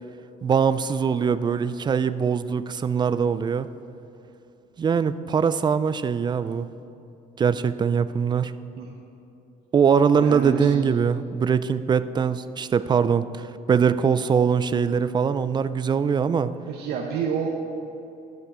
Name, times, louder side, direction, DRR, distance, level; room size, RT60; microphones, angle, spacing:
voice 1, 0.4-3.7 4.8-6.7 7.4-8.5 9.7-16.5, right 6 dB, 25° right, 14 dB, 0.3 m, -22 dB
voice 2, 10.2-10.8 16.6-17.5, right 7 dB, 75° right, 0 dB, 0.9 m, -29 dB
10.5 x 6.4 x 4.9 m, 2.8 s
cardioid pair, 110°, 17 cm